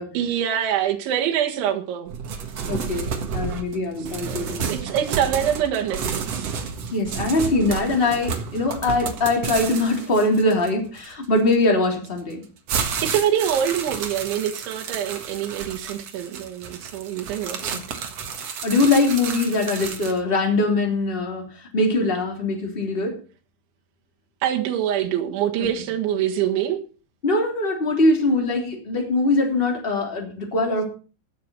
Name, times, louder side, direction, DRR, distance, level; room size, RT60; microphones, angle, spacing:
voice 1, 0.1-2.1 4.3-6.5 13.0-17.8 24.4-26.8, right 10 dB, 85° right, 4.0 m, -25 dB
sound 1, 2.1-11.5 12.2-20.2, right 6 dB, 60° right, 1.7 m, -31 dB
voice 2, 2.7-4.7 6.9-12.4 17.7-17.8 18.6-23.1 27.2-30.8, left 2 dB, 15° left, 2.6 m, -22 dB
16.0 x 6.7 x 6.2 m
omnidirectional pair, 5.2 m